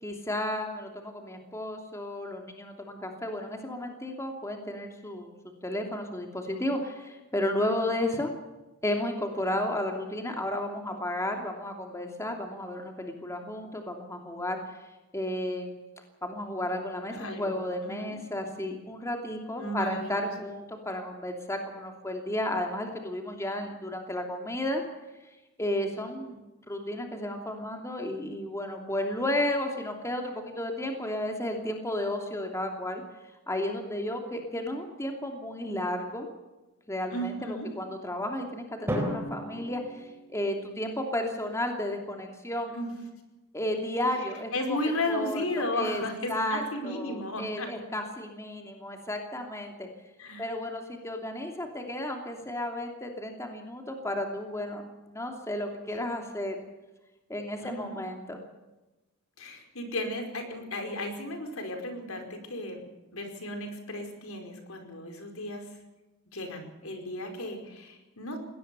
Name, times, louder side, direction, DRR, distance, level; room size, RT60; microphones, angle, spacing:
voice 1, 0.0-5.3 5.6-8.3 8.8-14.6 15.1-15.7 16.2-24.8 25.6-33.0 33.5-36.3 36.9-42.8 43.5-44.8 45.1-45.4 45.7-46.0 46.3-49.9 50.4-54.8 55.1-56.5 57.3-58.4, left 1 dB, 15° left, 3 dB, 2.8 m, -33 dB
voice 2, 17.1-17.5 17.8-18.1 19.6-20.3 37.1-37.7 42.7-42.9 44.5-47.7 50.2-50.5 57.6-58.0 59.4-62.8 63.1-65.6 66.3-68.4, left 1 dB, 70° left, 5 dB, 4.9 m, -34 dB
Drum, 38.9-41.0, equal, 10° right, 3.9 m, -35 dB
21.5 x 18.5 x 6.9 m, 1.1 s
head